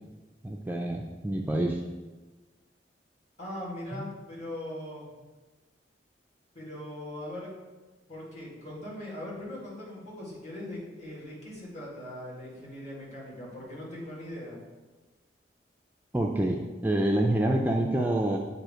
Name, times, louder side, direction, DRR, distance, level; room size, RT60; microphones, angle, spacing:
voice 1, 0.4-1.8 16.1-18.4, right 1 dB, 10° right, 1 dB, 0.3 m, -27 dB
voice 2, 3.4-5.1 6.5-7.5 8.1-14.6, left 1 dB, 40° left, -6 dB, 2.0 m, -40 dB
7.6 x 2.7 x 4.9 m, 1.2 s
head